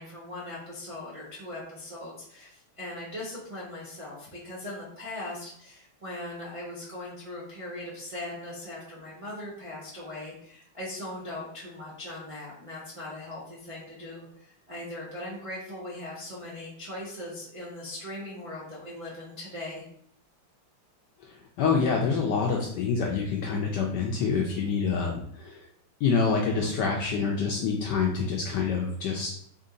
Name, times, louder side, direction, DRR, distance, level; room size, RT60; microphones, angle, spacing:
voice 1, 0.0-19.8, left 1 dB, 60° right, -8 dB, 0.3 m, -39 dB
voice 2, 21.2-25.7 26.0-29.3, left 5 dB, 75° left, 0 dB, 1.0 m, -27 dB
3.4 x 2.7 x 3.8 m, 0.67 s
omnidirectional pair, 2.3 m